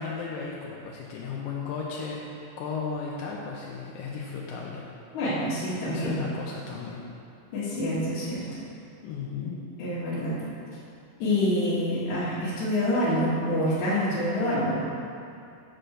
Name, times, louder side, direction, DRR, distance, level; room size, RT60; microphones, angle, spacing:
voice 1, 0.0-4.8 5.9-7.0 9.0-9.6, left 5 dB, 80° left, -3 dB, 2.2 m, -35 dB
voice 2, 5.1-6.2 7.5-8.4 9.8-10.4 11.2-14.8, left 1 dB, 60° left, -11 dB, 2.5 m, -26 dB
7.9 x 4.2 x 6.5 m, 2.5 s
omnidirectional pair, 4.1 m